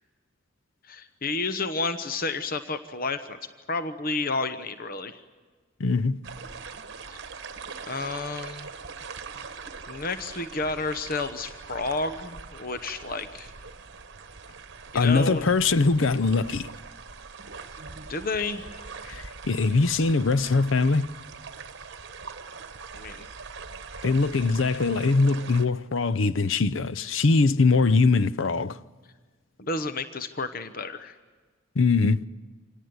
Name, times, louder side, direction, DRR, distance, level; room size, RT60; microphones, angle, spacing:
voice 1, 0.9-3.4 3.7-5.2 7.9-8.7 9.9-13.5 14.9-15.4 18.1-18.7 22.9-23.3 29.6-31.2, left 3 dB, 45° left, 1.0 m, -31 dB
voice 2, 5.8-6.2 14.9-16.7 19.0-21.1 24.0-28.8 31.8-32.3, left 3 dB, 65° left, 0.6 m, -22 dB
sound 1, 6.2-25.7, right 5 dB, 55° right, 1.3 m, -42 dB
26.0 x 18.5 x 9.5 m
head